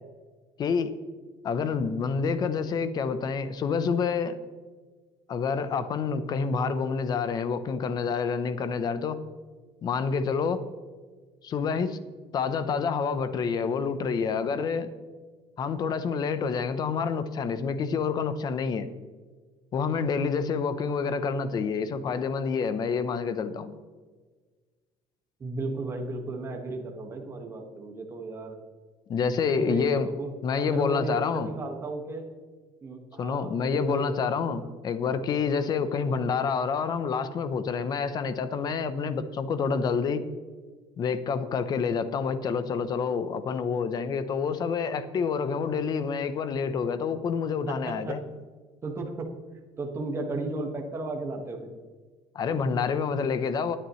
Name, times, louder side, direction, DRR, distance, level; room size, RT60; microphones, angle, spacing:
voice 1, 0.6-0.9 1.4-4.3 5.3-9.2 9.8-10.6 11.4-12.0 12.3-14.9 15.6-18.9 19.7-23.7 29.1-30.1 30.4-31.5 33.2-40.2 41.0-48.2 52.3-53.8, left 5 dB, 35° left, 12 dB, 0.8 m, -28 dB
voice 2, 25.4-28.6 29.5-32.3 32.8-34.2 35.8-36.1 47.7-48.2 48.8-49.3 49.8-51.7, right 2 dB, 20° right, 2 dB, 1.6 m, -35 dB
19.5 x 9.9 x 3.2 m, 1.4 s
cardioid pair, 175°, 13 cm